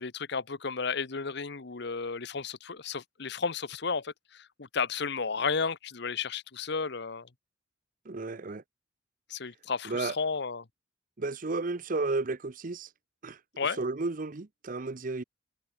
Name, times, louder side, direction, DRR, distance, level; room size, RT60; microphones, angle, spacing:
voice 1, 0.0-7.3 9.3-10.6 13.6-13.8, left 5 dB, 60° left, 1.0 m, -33 dB
voice 2, 8.0-8.6 9.8-10.2 11.2-12.9 13.2-15.2, right 3 dB, 45° right, 0.7 m, -33 dB
head